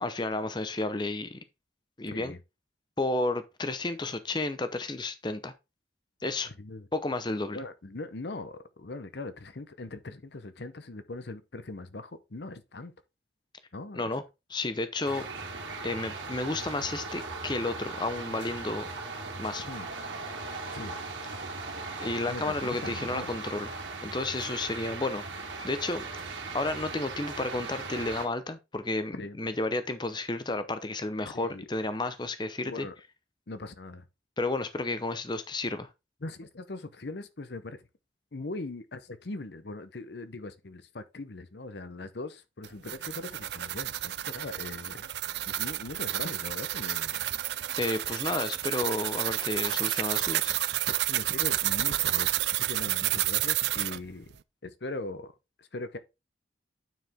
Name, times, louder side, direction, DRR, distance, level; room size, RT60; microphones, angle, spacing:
voice 1, 0.0-1.4 2.0-2.3 3.0-5.5 6.2-6.5 6.9-7.6 13.9-14.2 14.5-15.3 15.8-18.9 19.4-19.7 22.0-25.2 25.6-26.1 26.5-32.9 34.4-35.9 47.8-50.6, left 2 dB, 25° left, 0.7 m, -32 dB
voice 2, 2.1-2.4 6.6-6.9 7.5-12.9 13.7-14.1 19.7-19.9 20.7-21.0 22.3-23.3 29.1-29.4 31.3-31.7 32.7-33.0 33.5-34.1 36.2-37.9 38.3-45.1 45.5-47.3 48.1-48.2 51.0-54.3 54.6-55.3 55.6-56.0, left 2 dB, 60° left, 0.8 m, -40 dB
sound 1, 15.0-28.3, right 3 dB, 80° right, 2.2 m, -38 dB
sound 2, 42.6-54.0, right 14 dB, 60° right, 0.4 m, -30 dB
9.2 x 4.8 x 3.6 m
head